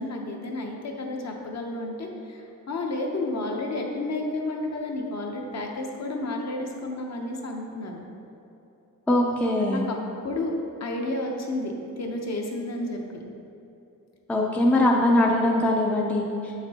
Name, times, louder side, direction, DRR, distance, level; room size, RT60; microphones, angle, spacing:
voice 1, 0.0-8.0 9.2-9.3 9.7-10.0 10.2-10.5 10.8-13.2, left 2 dB, 50° left, 1 dB, 0.8 m, -31 dB
voice 2, 9.1-9.8 14.3-16.7, left 1 dB, 5° left, -1 dB, 0.4 m, -22 dB
7.5 x 5.8 x 2.8 m, 2.9 s
wide cardioid pair, 165°, 34 cm